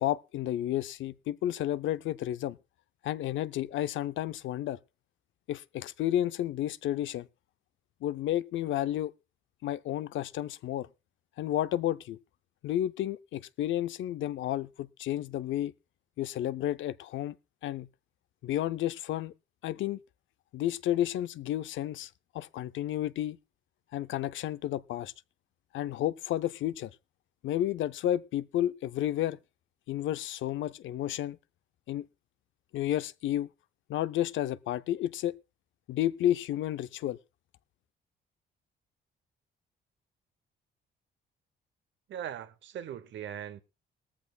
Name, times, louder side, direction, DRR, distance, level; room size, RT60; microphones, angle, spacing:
voice 1, 0.0-2.6 3.0-4.8 5.5-7.3 8.0-9.1 9.6-10.9 11.4-12.2 12.6-15.7 16.2-17.4 17.6-17.9 18.4-19.3 19.6-20.0 20.5-23.4 23.9-25.1 25.7-26.9 27.4-29.4 29.9-31.4 31.9-32.1 32.7-33.5 33.9-35.3 35.9-37.2, left 12 dB, 75° left, 0.6 m, -31 dB
voice 2, 42.1-43.6, right 9 dB, 70° right, 0.9 m, -40 dB
18.5 x 14.0 x 2.3 m
cardioid pair, 90°, 20 cm